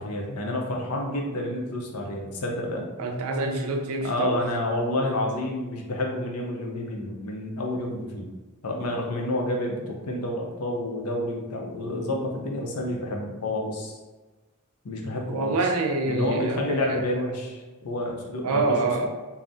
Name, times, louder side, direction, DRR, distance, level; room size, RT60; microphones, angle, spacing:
voice 1, 0.0-2.9 4.0-8.3 8.6-14.0 14.8-15.6 16.1-19.1, left 1 dB, 80° left, 0 dB, 0.6 m, -29 dB
voice 2, 3.0-4.4 15.3-17.0 18.4-19.1, right 3 dB, 70° right, 2 dB, 0.5 m, -26 dB
2.6 x 2.0 x 3.3 m, 1.2 s
head